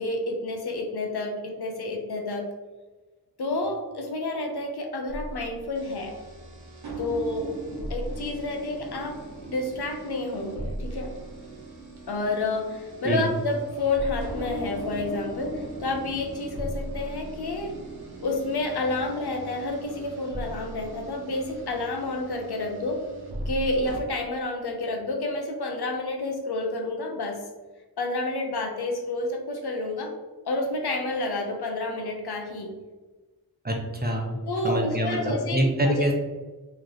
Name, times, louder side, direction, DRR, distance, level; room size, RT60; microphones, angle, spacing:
voice 1, 0.0-2.5 3.4-6.1 7.0-7.5 7.9-9.2 9.5-11.1 12.1-17.7 18.2-23.0 23.5-27.4 28.0-30.1 30.4-32.7 34.4-36.1, left 2 dB, 80° left, 2 dB, 0.7 m, -29 dB
sound 1, 5.1-24.0, right 1 dB, 80° right, 1.0 m, -38 dB
voice 2, 33.6-34.3 34.6-36.1, right 1 dB, 25° right, 1 dB, 0.7 m, -25 dB
3.2 x 3.0 x 3.8 m, 1.3 s
wide cardioid pair, 65°, 38 cm